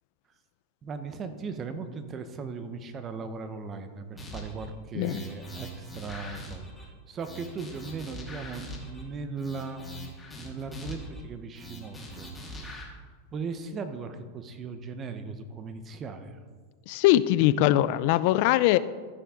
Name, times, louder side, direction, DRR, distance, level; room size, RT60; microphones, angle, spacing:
voice 1, 0.8-9.9 10.4-12.9 13.3-16.4, right 4 dB, 30° right, 9 dB, 1.0 m, -38 dB
sound 1, 4.2-4.7 5.0-6.9 7.2-9.0 9.4-11.2 11.5-12.8, equal, 10° left, 2.0 m, -42 dB
voice 2, 16.9-18.8, left 14 dB, 60° left, 16 dB, 0.4 m, -22 dB
14.0 x 5.8 x 3.8 m, 1.5 s
hypercardioid pair, 120°, 0 cm